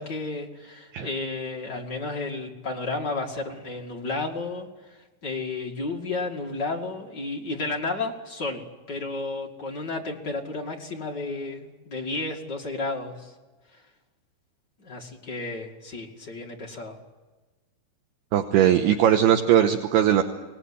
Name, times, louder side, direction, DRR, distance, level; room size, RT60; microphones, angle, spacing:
voice 1, 0.0-13.3 13.7-13.8 14.8-17.0, left 3 dB, 40° left, 1 dB, 1.6 m, -32 dB
voice 2, 18.3-20.2, right 10 dB, 75° right, 6 dB, 2.6 m, -19 dB
25.0 x 19.0 x 9.8 m, 1.2 s
omnidirectional pair, 5.4 m